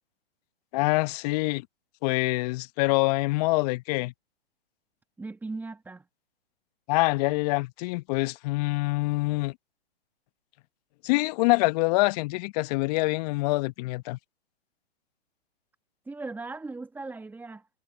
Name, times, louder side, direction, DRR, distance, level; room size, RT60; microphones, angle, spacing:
voice 1, 0.7-1.7 2.0-4.1 6.9-9.5 11.0-14.2, left 24 dB, 40° left, 1.1 m, -25 dB
voice 2, 5.2-6.1 16.1-17.7, right 3 dB, 5° right, 1.7 m, -38 dB
hypercardioid pair, 120°, 32 cm